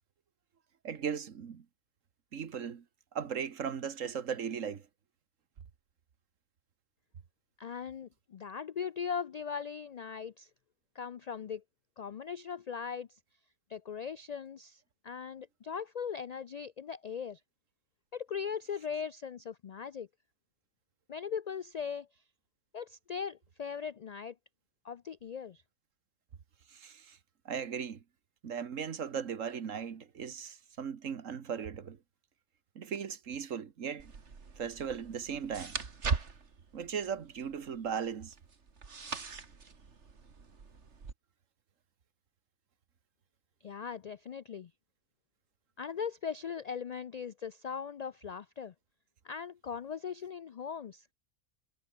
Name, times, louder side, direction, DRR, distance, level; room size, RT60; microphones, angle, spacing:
voice 1, 0.8-1.7 2.3-2.8 3.2-4.8 26.7-27.2 27.5-28.0 28.4-32.0 32.8-34.1 34.6-35.8 36.7-38.4, right 7 dB, 80° right, 1.7 m, -37 dB
voice 2, 7.6-10.5 10.9-11.6 12.0-13.1 13.7-17.4 18.1-20.1 21.1-22.1 22.7-24.4 24.8-25.6 43.6-44.7 45.8-48.7 49.2-51.1, left 6 dB, 90° left, 0.3 m, -39 dB
sound 1, 34.0-41.1, right 5 dB, 65° right, 2.2 m, -40 dB
omnidirectional pair, 1.3 m